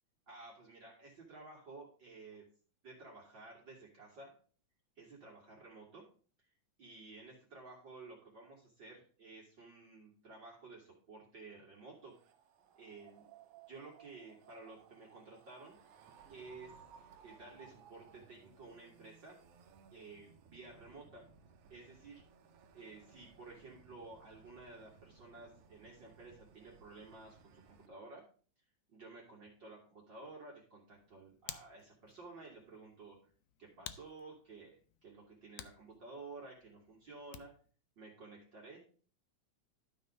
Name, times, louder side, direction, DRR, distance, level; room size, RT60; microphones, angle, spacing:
voice 1, 0.3-2.5 2.8-4.3 5.0-6.0 6.8-12.1 12.8-13.2 13.7-15.8 16.3-16.8 17.2-19.4 19.9-21.2 21.7-22.2 22.7-28.2 28.9-33.2 33.6-37.5 38.0-38.8, right 3 dB, 40° right, -3 dB, 2.5 m, -53 dB
sound 1, 12.1-27.9, right 5 dB, 65° right, 1.6 m, -64 dB
sound 2, 12.6-18.4, right 9 dB, 85° right, 2.1 m, -60 dB
Hands, 30.9-37.7, left 12 dB, 75° left, 1.7 m, -54 dB
12.5 x 4.3 x 5.2 m, 0.42 s
omnidirectional pair, 3.4 m